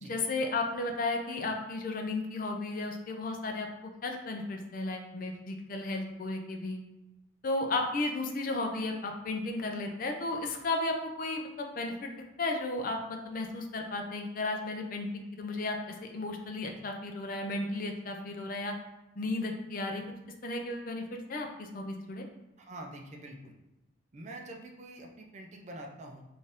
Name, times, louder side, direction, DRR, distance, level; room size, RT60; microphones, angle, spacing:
voice 1, 0.0-6.8 7.4-12.1 12.4-18.7 19.2-20.0 20.4-22.3, left 2 dB, 45° left, 3 dB, 0.4 m, -34 dB
voice 2, 22.6-23.5 24.1-26.2, right 1 dB, 35° right, 1 dB, 0.4 m, -45 dB
4.1 x 2.5 x 3.5 m, 0.99 s
head